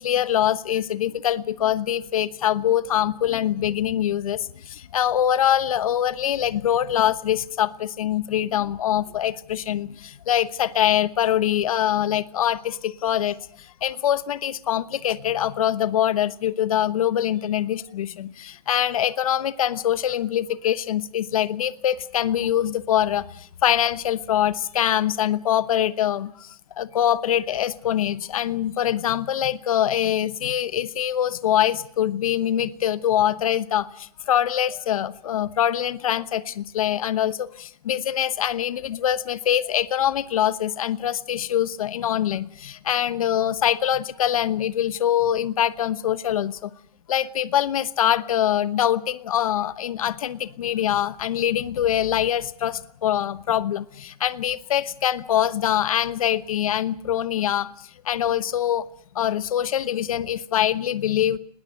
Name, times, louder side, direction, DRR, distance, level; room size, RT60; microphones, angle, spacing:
voice 1, 0.0-46.7 47.1-57.7 58.0-58.9 59.1-61.4, left 10 dB, 60° left, 16 dB, 1.1 m, -24 dB
20.5 x 18.5 x 9.1 m, 0.64 s
hypercardioid pair, 165°, 20 cm